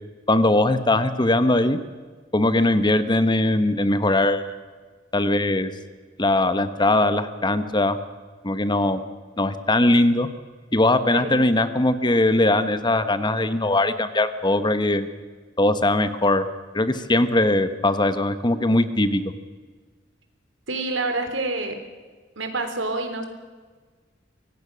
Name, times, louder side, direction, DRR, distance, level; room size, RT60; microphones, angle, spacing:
voice 1, 0.3-1.8 2.3-4.4 5.1-5.7 6.2-8.0 8.4-9.0 9.4-10.3 10.7-15.1 15.6-16.4 16.7-19.2, left 2 dB, 25° left, 11 dB, 1.1 m, -20 dB
voice 2, 11.1-11.4 20.7-21.8 22.4-23.3, right 2 dB, 80° right, 6 dB, 3.5 m, -27 dB
24.5 x 18.0 x 6.3 m, 1.4 s
head